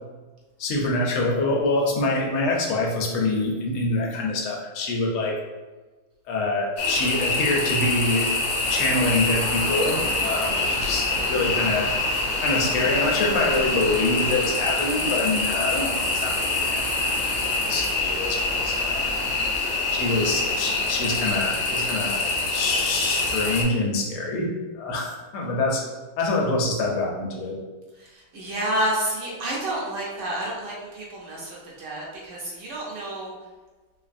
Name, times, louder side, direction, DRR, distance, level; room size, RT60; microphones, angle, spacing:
voice 1, 0.6-5.3 6.3-8.3 8.7-11.9 12.4-16.4 16.6-16.8 17.4-19.0 19.9-22.2 22.5-25.8 26.2-27.6, left 2 dB, 80° left, -1 dB, 1.6 m, -25 dB
sound 1, 6.8-23.6, left 3 dB, 65° left, 1.0 m, -25 dB
sound 2, 8.7-19.6, right 2 dB, 85° right, 0.9 m, -36 dB
voice 2, 10.4-10.7 28.0-33.3, right 1 dB, 65° right, -4 dB, 1.3 m, -30 dB
4.0 x 3.1 x 2.5 m, 1.2 s
omnidirectional pair, 2.3 m